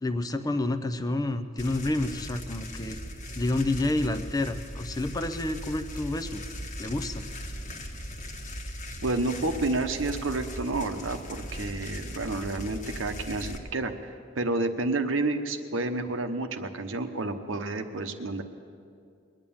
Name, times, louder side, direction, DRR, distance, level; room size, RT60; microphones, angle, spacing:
voice 1, 0.0-3.0 3.3-6.4 6.8-7.2, left 2 dB, 20° left, 9 dB, 0.5 m, -29 dB
sound 1, 1.6-13.6, equal, 40° left, 1.3 m, -39 dB
voice 2, 9.0-18.4, right 2 dB, 75° right, 7 dB, 1.0 m, -30 dB
21.5 x 9.0 x 7.1 m, 2.3 s
head